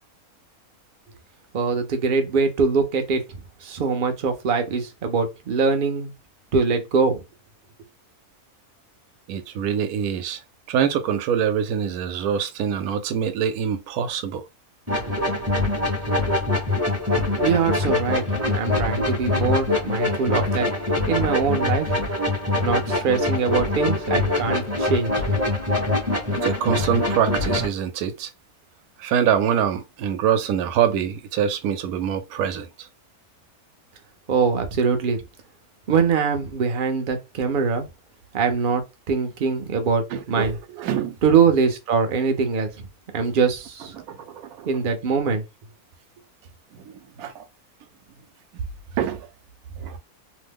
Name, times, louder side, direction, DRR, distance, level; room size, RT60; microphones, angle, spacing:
voice 1, 1.5-6.1 6.5-7.2 17.4-20.7 21.1-22.0 22.6-25.1 34.3-35.2 35.9-37.9 38.3-40.6 41.2-42.9 43.1-43.9 44.6-45.4, right 5 dB, 55° right, 0.6 m, -23 dB
voice 2, 9.3-10.4 10.7-14.4 26.3-28.3 29.0-32.9 40.1-41.2 44.0-44.7 46.7-47.5 49.0-49.3 49.8-50.0, right 8 dB, 75° right, 1.0 m, -25 dB
sound 1, 14.9-27.7, left 2 dB, 15° right, 0.7 m, -24 dB
2.7 x 2.1 x 3.5 m
omnidirectional pair, 1.6 m